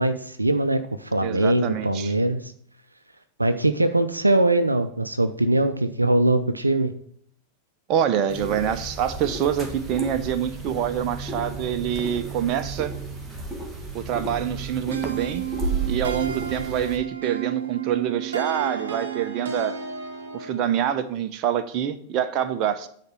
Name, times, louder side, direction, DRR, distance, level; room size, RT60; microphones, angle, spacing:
voice 1, 0.0-2.5 3.4-6.9, right 1 dB, 85° right, 9 dB, 0.6 m, -22 dB
voice 2, 1.2-2.1 7.9-12.9 13.9-15.4 15.9-19.8 20.3-22.9, right 9 dB, 40° right, 10 dB, 0.8 m, -26 dB
sound 1, 8.3-17.0, right 3 dB, 10° right, 1.7 m, -33 dB
sound 2, 14.9-20.7, right 8 dB, 65° right, 1.0 m, -32 dB
9.6 x 4.3 x 6.1 m, 0.64 s
figure-of-eight pair, 90°, 0 cm